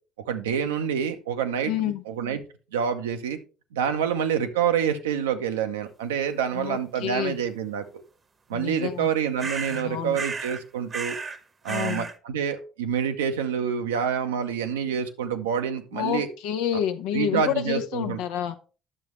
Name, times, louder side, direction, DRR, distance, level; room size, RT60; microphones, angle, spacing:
voice 1, 0.3-2.4 2.7-3.4 3.7-7.8 8.5-11.2 11.6-16.3 17.1-18.2, right 8 dB, 80° right, 8 dB, 0.7 m, -27 dB
voice 2, 1.7-2.0 6.5-7.4 8.5-9.1 9.7-10.2 11.7-12.1 15.9-18.6, left 10 dB, 70° left, 8 dB, 0.8 m, -29 dB
sound 1, 9.4-9.9 10.1-10.6 10.9-11.4 11.7-12.2, right 4 dB, 35° right, 0.9 m, -33 dB
9.9 x 6.9 x 3.1 m, 0.35 s
hypercardioid pair, 55°, 0 cm